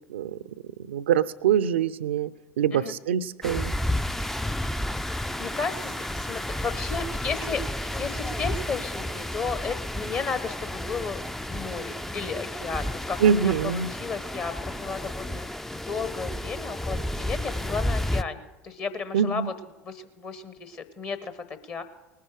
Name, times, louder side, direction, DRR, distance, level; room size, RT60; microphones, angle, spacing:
voice 1, 0.9-2.3 2.6-3.8 13.2-13.9 19.1-19.5, right 8 dB, 70° right, 18 dB, 0.5 m, -24 dB
sound 1, 3.4-18.2, left 1 dB, 5° left, 0.3 m, -31 dB
voice 2, 5.4-19.5 19.8-21.8, left 5 dB, 40° left, 11 dB, 1.1 m, -34 dB
19.5 x 9.4 x 4.9 m, 1.0 s
figure-of-eight pair, 70°, 7 cm